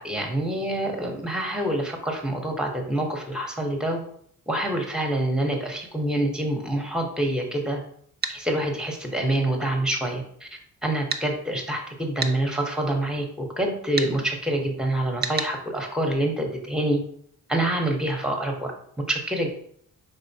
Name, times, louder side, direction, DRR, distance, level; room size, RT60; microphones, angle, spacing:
voice 1, 0.0-4.0 4.5-7.8 8.3-10.5 10.8-17.0 17.5-18.7 19.1-19.5, right 1 dB, ahead, 2 dB, 0.9 m, -26 dB
sound 1, 8.2-8.4 11.1-11.3 12.2-12.4 14.0-14.1 15.2-15.5, right 5 dB, 30° right, 0.4 m, -28 dB
4.9 x 3.9 x 2.8 m, 0.64 s
cardioid pair, 110°, 35 cm